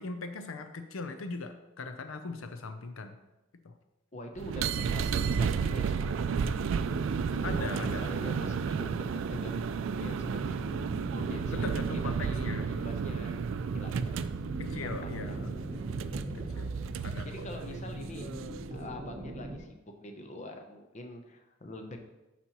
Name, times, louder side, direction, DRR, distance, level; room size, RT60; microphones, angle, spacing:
voice 1, 0.0-3.2 3.6-3.7 7.4-8.2 11.5-12.7 14.6-15.5 16.3-16.7 17.0-17.3 17.7-17.9, left 3 dB, 85° left, 7 dB, 0.6 m, -40 dB
voice 2, 4.1-6.5 7.3-7.6 8.0-10.7 11.1-11.9 12.2-13.4 13.7-14.2 14.7-15.4 16.8-16.9 17.2-18.3 18.7-22.0, left 1 dB, 35° left, 4 dB, 0.7 m, -45 dB
sound 1, 4.4-18.8, right 6 dB, 70° right, 0.3 m, -33 dB
sound 2, 5.2-19.6, right 1 dB, 30° right, 0.9 m, -41 dB
11.0 x 4.2 x 3.0 m, 0.99 s
head